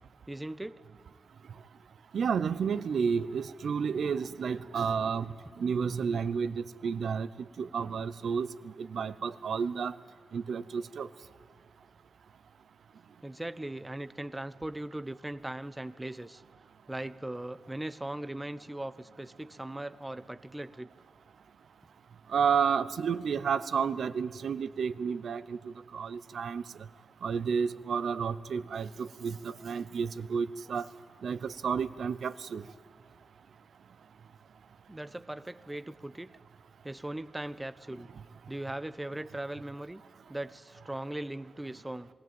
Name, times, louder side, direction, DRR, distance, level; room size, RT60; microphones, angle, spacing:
voice 1, 0.3-0.8 13.2-16.4 16.9-20.9 34.9-36.3 36.8-38.1 38.5-40.0 40.3-42.1, right 1 dB, 10° right, 14 dB, 0.5 m, -39 dB
voice 2, 2.1-7.3 7.6-8.5 8.8-9.9 10.3-11.1 22.3-26.6 27.2-30.8 31.2-32.6, right 6 dB, 70° right, 16 dB, 0.7 m, -31 dB
21.0 x 16.5 x 9.2 m, 2.2 s
wide cardioid pair, 160°, 0 cm